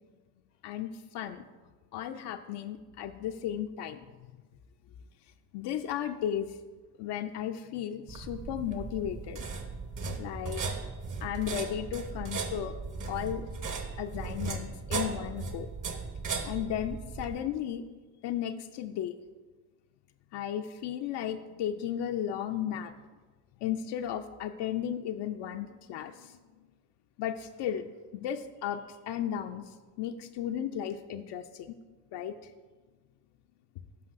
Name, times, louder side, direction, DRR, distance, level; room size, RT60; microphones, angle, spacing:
voice 1, 0.6-1.4 1.9-4.0 5.5-6.5 7.0-9.5 10.2-10.7 11.2-12.7 13.1-13.5 14.0-15.7 16.5-17.8 18.2-19.1 20.3-22.9 23.6-26.4 27.2-27.9 28.1-29.6 30.0-31.8 32.1-32.3, left 10 dB, 55° left, 7 dB, 0.5 m, -34 dB
sound 1, 8.1-17.4, right 4 dB, 40° right, 1.0 m, -37 dB
9.7 x 5.6 x 2.5 m, 1.3 s
hypercardioid pair, 45°, 49 cm